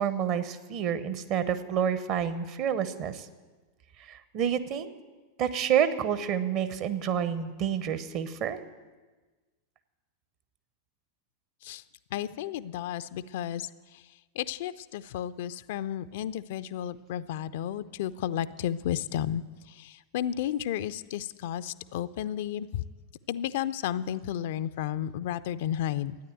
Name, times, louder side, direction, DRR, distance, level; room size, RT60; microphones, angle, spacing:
voice 1, 0.0-3.3 4.0-4.9 5.4-8.6, right 8 dB, 40° right, 12 dB, 0.9 m, -29 dB
voice 2, 12.1-14.0 14.4-22.8 23.3-26.2, left 11 dB, 55° left, 14 dB, 0.4 m, -33 dB
13.5 x 9.7 x 7.9 m, 1.3 s
figure-of-eight pair, 90°, 0 cm